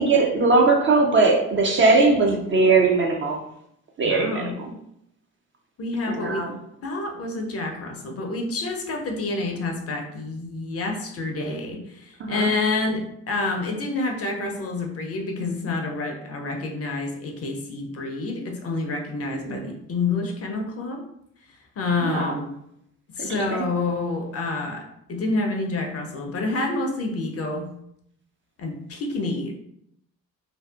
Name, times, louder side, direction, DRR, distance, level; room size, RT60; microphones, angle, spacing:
voice 1, 0.0-3.4 4.0-4.7 6.1-6.5 12.2-12.5 19.3-19.6 22.0-22.3 23.2-23.6, right 3 dB, 30° right, 1 dB, 0.5 m, -20 dB
voice 2, 4.0-4.6 5.8-6.4 6.8-21.0 21.8-22.5 23.2-24.8 25.1-27.7 28.6-29.5, left 3 dB, 35° left, 2 dB, 0.6 m, -28 dB
2.5 x 2.3 x 2.3 m, 0.75 s
hypercardioid pair, 50°, 40 cm